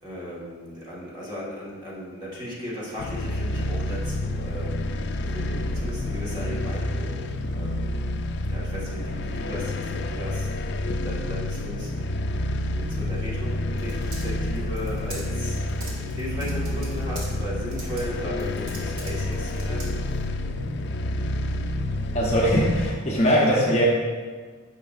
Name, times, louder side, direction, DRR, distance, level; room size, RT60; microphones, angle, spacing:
voice 1, 0.0-7.9 8.5-10.8 11.0-20.0 23.4-23.9, equal, 20° right, -6 dB, 1.5 m, -36 dB
sound 1, 3.0-22.9, left 1 dB, 55° left, 0.3 m, -29 dB
Typing, 12.9-20.3, right 1 dB, 75° right, 1.7 m, -42 dB
voice 2, 22.1-23.9, equal, 30° left, -4 dB, 0.8 m, -21 dB
9.2 x 5.7 x 2.5 m, 1.5 s
head